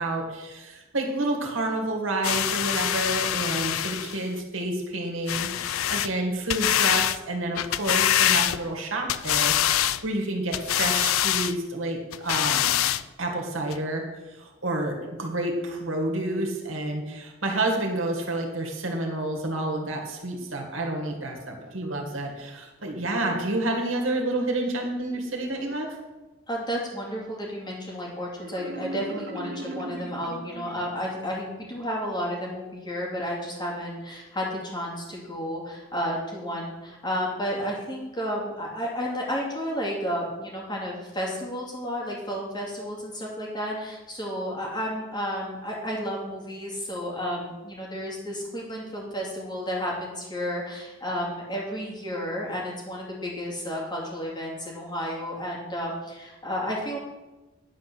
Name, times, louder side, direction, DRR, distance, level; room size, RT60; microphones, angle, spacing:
voice 1, 0.0-12.8 13.2-26.0, right 2 dB, 70° right, 1 dB, 2.0 m, -29 dB
sound 1, 2.2-4.2 5.3-6.1 6.5-7.2 7.6-8.8 9.1-10.0 10.5-11.5 12.1-13.0 13.7-13.8, left 11 dB, 85° left, 0.4 m, -24 dB
voice 2, 26.5-57.0, equal, 20° left, -3 dB, 2.7 m, -32 dB
Marimba xylophone, 28.4-31.2, right 1 dB, 55° right, 0.9 m, -38 dB
10.0 x 4.8 x 7.0 m, 1.1 s
head